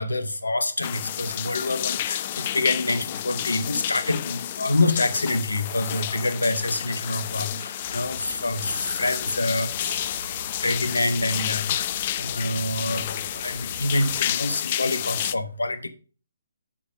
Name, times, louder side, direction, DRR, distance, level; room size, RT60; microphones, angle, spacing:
voice 1, 0.0-10.3 10.6-15.9, left 2 dB, 80° left, 1.0 m, -27 dB
sound 1, 0.8-15.3, left 12 dB, 35° left, 0.4 m, -30 dB
sound 2, 7.8-14.2, right 3 dB, 50° right, 2.6 m, -45 dB
7.2 x 5.1 x 5.1 m
figure-of-eight pair, 140°, 0 cm